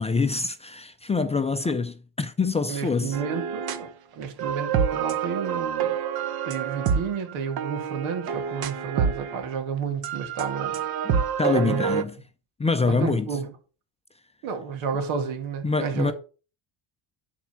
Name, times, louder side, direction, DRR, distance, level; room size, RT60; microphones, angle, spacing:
voice 1, 0.0-3.2 11.0-12.1 12.6-13.3 15.6-16.1, left 4 dB, 15° left, 0.4 m, -25 dB
voice 2, 2.7-6.0 6.5-10.8 11.5-12.0 12.9-13.5 14.4-16.1, right 6 dB, 90° right, 2.6 m, -31 dB
sound 1, 3.1-3.9 4.2-9.5 10.0-12.0, right 7 dB, 50° right, 1.1 m, -27 dB
11.5 x 4.6 x 5.9 m
cardioid pair, 145°, 47 cm